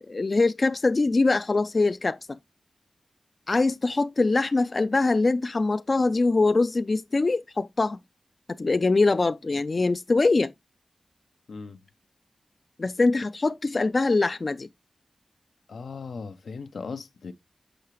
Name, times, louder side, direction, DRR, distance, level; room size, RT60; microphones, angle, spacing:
voice 1, 0.0-2.2 3.5-8.0 8.6-10.5 12.8-14.7, left 3 dB, 50° left, 0.4 m, -23 dB
voice 2, 11.5-11.8 15.7-17.3, left 4 dB, 85° left, 0.7 m, -38 dB
6.4 x 5.6 x 3.0 m
cardioid pair, 50°, 0 cm